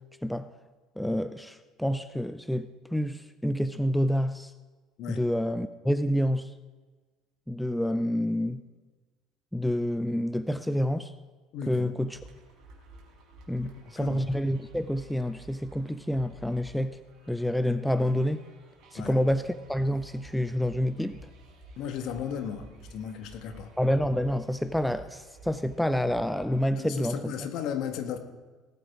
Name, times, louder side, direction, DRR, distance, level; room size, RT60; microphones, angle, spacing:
voice 1, 1.0-4.5 5.1-6.5 7.5-8.6 9.5-11.1 11.7-12.2 13.5-17.0 17.3-18.4 18.9-21.2 23.8-27.2, equal, 5° left, 12 dB, 0.6 m, -28 dB
voice 2, 11.5-11.9 13.6-14.2 19.0-19.2 21.8-23.7 26.8-28.2, left 8 dB, 55° left, 6 dB, 1.7 m, -35 dB
sound 1, 12.0-26.8, right 2 dB, 55° right, 4.6 m, -52 dB
18.5 x 8.2 x 4.8 m, 1.4 s
figure-of-eight pair, 65°, 0 cm